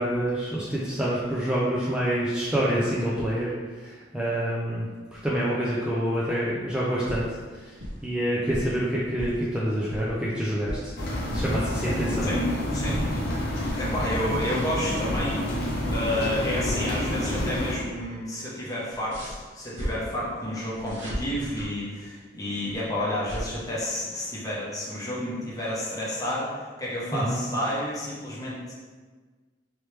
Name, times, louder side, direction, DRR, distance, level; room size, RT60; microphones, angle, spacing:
voice 1, 0.0-10.9 11.3-12.3 27.1-27.5, right 1 dB, 5° right, -7 dB, 0.4 m, -27 dB
sound 1, 7.0-7.5 7.8-8.1 8.5-9.4 9.7-10.9 11.3-11.7 12.1-12.4 12.7-13.2 13.6-13.8 14.2-15.6 15.9-17.0 17.3-17.6 17.9-18.0 18.9-19.9 20.7-21.7 22.6-23.4, equal, 85° right, 1.0 m, -35 dB
sound 2, 11.0-17.8, left 1 dB, 55° left, 0.7 m, -29 dB
voice 2, 12.7-13.0 13.7-15.4 15.9-28.7, left 1 dB, 20° left, -7 dB, 0.9 m, -30 dB
3.1 x 3.0 x 3.2 m, 1.4 s
head